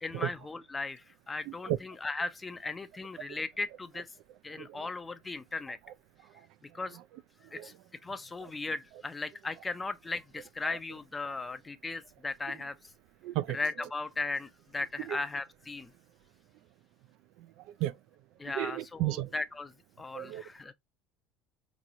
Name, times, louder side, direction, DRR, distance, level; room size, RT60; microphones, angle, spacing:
voice 1, 0.0-4.1 4.4-5.8 6.7-7.0 7.5-7.7 8.0-12.8 13.5-15.9 18.4-20.7, left 3 dB, 15° left, 0.5 m, -37 dB
voice 2, 1.5-1.8 4.6-4.7 6.9-7.0 7.6-7.7 13.2-13.6 15.1-15.2 17.8-17.9 18.5-19.3 20.1-20.4, right 14 dB, 65° right, 0.3 m, -33 dB
4.5 x 3.0 x 2.5 m
supercardioid pair, 115°, 0 cm